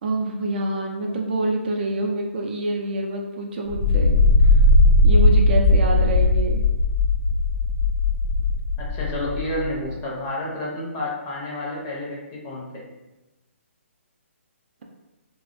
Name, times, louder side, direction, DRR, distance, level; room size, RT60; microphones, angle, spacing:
voice 1, 0.0-4.1 5.0-6.6, right 2 dB, 45° right, 1 dB, 0.4 m, -26 dB
sound 1, 3.7-9.7, left 2 dB, 75° left, 0.6 m, -18 dB
voice 2, 8.8-12.8, left 1 dB, 25° left, -4 dB, 0.6 m, -30 dB
2.3 x 2.1 x 2.5 m, 1.0 s
hypercardioid pair, 145°, 7 cm